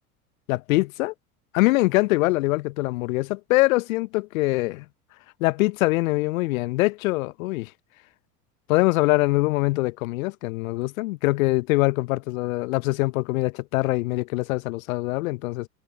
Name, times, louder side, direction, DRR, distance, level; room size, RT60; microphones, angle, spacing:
voice 1, 0.5-1.1 1.5-4.8 5.4-7.7 8.7-15.7, left 21 dB, 60° left, 0.8 m, -23 dB
figure-of-eight pair, 80°, 46 cm